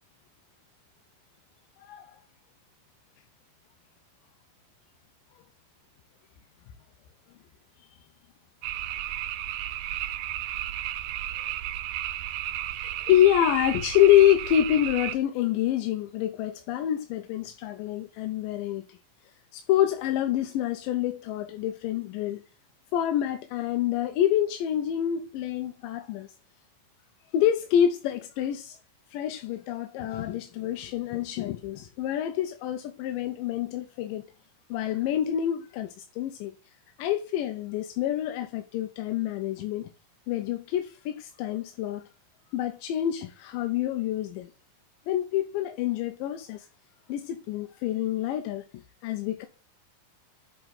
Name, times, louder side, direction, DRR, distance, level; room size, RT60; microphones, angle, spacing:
voice 1, 1.8-2.1 8.8-8.9 12.8-19.0 19.5-22.4 22.9-26.3 27.3-28.8 29.1-34.2 34.7-36.5 37.0-39.9 40.3-42.0 42.5-44.5 45.1-46.7 47.1-49.5, left 11 dB, 80° left, 2.2 m, -27 dB
sound 1, 8.6-15.2, right 12 dB, 80° right, 2.1 m, -33 dB
7.9 x 4.4 x 4.0 m
omnidirectional pair, 4.0 m